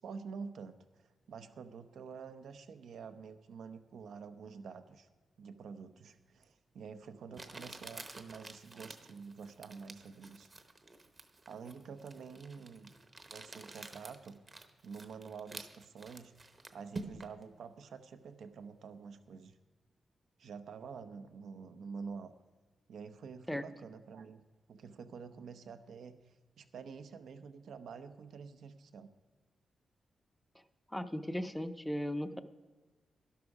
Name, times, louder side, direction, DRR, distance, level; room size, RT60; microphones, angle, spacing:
voice 1, 0.0-5.1 5.4-10.5 11.5-12.9 13.3-14.4 14.8-16.3 16.7-19.5 20.4-22.3 22.9-24.4 24.7-29.1, right 5 dB, 80° right, 9 dB, 0.8 m, -48 dB
Crumpling crinkling, 6.4-6.5 7.3-17.4, right 3 dB, 30° right, 0.9 m, -49 dB
voice 2, 30.9-32.4, equal, 5° left, 11 dB, 0.5 m, -37 dB
11.5 x 11.5 x 4.8 m, 1.3 s
wide cardioid pair, 155°, 0 cm